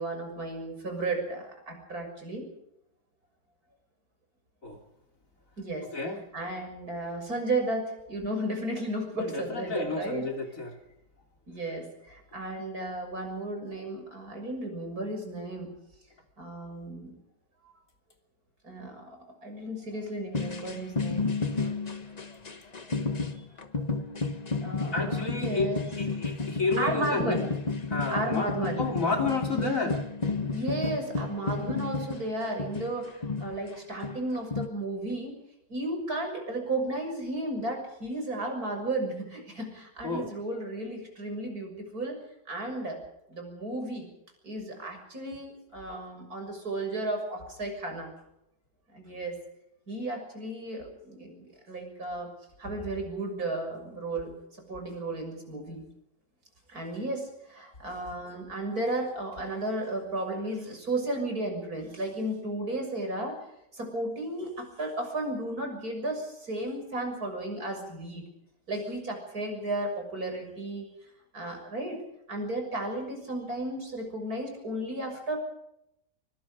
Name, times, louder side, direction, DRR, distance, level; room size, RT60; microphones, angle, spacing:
voice 1, 0.0-2.5 5.6-5.9 6.3-10.3 11.5-15.7 16.4-17.2 18.6-21.3 23.4-23.5 24.6-25.9 26.8-27.5 28.1-28.8 29.4-29.9 30.5-35.3 35.7-42.2 42.5-43.0 43.3-44.1 44.4-48.1 48.9-49.4 49.9-52.3 52.6-54.3 54.7-55.8 56.7-63.4 63.7-68.3 68.7-70.9 71.3-72.0 72.3-75.4, right 1 dB, 55° right, 3 dB, 7.1 m, -34 dB
voice 2, 5.9-6.2 9.2-10.8 24.9-27.4 27.9-28.5 28.8-30.0 40.0-40.3, left 3 dB, 45° left, 3 dB, 3.5 m, -31 dB
sound 1, 20.3-33.8 34.0-34.7, left 4 dB, 25° left, 1.2 m, -32 dB
24.5 x 24.0 x 5.1 m, 0.81 s
omnidirectional pair, 1.9 m